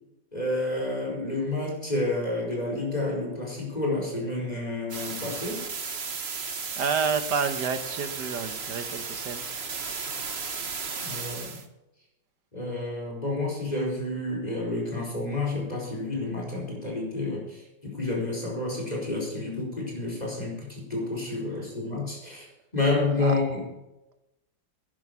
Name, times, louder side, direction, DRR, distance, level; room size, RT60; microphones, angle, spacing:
voice 1, 0.3-5.6 11.0-11.6 12.5-22.5 22.7-23.6, left 2 dB, 20° left, -2 dB, 5.0 m, -29 dB
sound 1, 4.9-11.6, right 5 dB, 35° right, 1.3 m, -34 dB
voice 2, 6.8-9.4 23.2-23.4, right 6 dB, 60° right, 10 dB, 1.6 m, -29 dB
11.5 x 10.5 x 6.8 m, 0.97 s
omnidirectional pair, 2.1 m